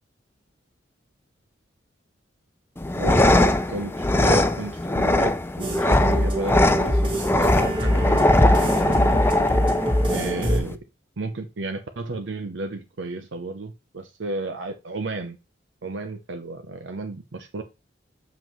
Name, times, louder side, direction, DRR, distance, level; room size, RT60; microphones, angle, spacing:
sound 1, 2.8-10.8, left 1 dB, 10° left, 0.4 m, -21 dB
voice 1, 3.0-9.2 10.1-10.8 11.2-15.4 15.8-17.6, right 2 dB, 70° right, 7 dB, 0.7 m, -32 dB
sound 2, 5.6-10.6, equal, 25° right, 1.9 m, -23 dB
7.4 x 5.7 x 3.1 m, 0.27 s
head